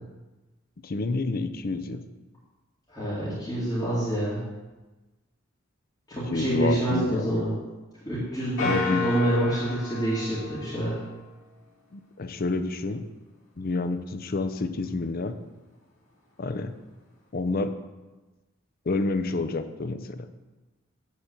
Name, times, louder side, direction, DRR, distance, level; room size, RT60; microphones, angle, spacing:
voice 1, 0.8-2.0 6.3-7.2 8.6-9.0 11.9-13.0 13.6-15.4 16.4-16.7 17.3-17.8 18.9-20.3, left 3 dB, 45° left, 10 dB, 0.5 m, -29 dB
voice 2, 2.9-4.4 6.1-7.5 8.0-11.0, right 1 dB, 20° left, -11 dB, 2.2 m, -27 dB
sound 1, 8.6-11.3, left 4 dB, 75° left, 2.5 m, -32 dB
8.6 x 4.2 x 6.6 m, 1.2 s
head